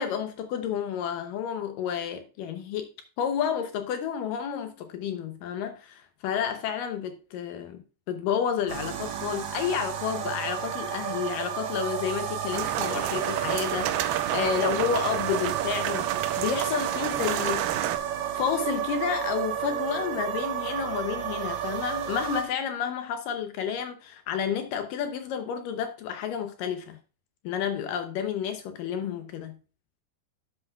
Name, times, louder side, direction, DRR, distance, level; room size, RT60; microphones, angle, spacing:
voice 1, 0.0-2.9 3.2-7.8 8.1-17.9 18.3-27.0 27.4-29.6, left 8 dB, 80° left, 2.0 m, -30 dB
sound 1, 8.7-22.4, right 10 dB, 60° right, 2.1 m, -31 dB
sound 2, 12.5-18.0, right 12 dB, 80° right, 2.4 m, -31 dB
11.5 x 7.7 x 2.3 m
omnidirectional pair, 4.6 m